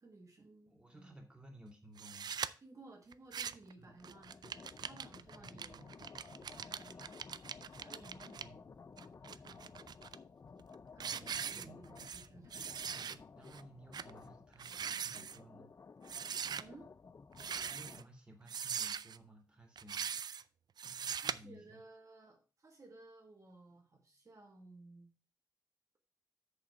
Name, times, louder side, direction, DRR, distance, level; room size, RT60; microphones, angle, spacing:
voice 1, 0.0-1.1 2.6-5.9 6.6-7.0 7.7-8.5 9.2-9.7 10.9-12.6 16.6-16.9 21.2-25.2, right 2 dB, 50° right, 1 dB, 1.5 m, -57 dB
voice 2, 0.7-2.5 3.8-4.0 4.4-4.6 5.4-5.9 6.9-7.1 8.4-8.7 11.0-11.8 12.9-15.7 17.7-20.1 20.8-21.8, right 1 dB, 15° right, 1 dB, 2.5 m, -57 dB
sound 1, 2.0-2.5 3.1-3.7 4.0-8.4 9.0-10.2 10.6-10.7 11.0-12.3 12.5-13.2 13.5-13.6 13.9-14.1 14.5-15.4 16.1-16.6 17.3-18.0 18.5-19.2 19.8-20.4 20.8-21.3, right 7 dB, 85° right, 0.4 m, -41 dB
sound 2, 3.9-18.0, left 5 dB, 50° left, 0.4 m, -55 dB
6.8 x 5.4 x 5.5 m, 0.34 s
wide cardioid pair, 95°, 7 cm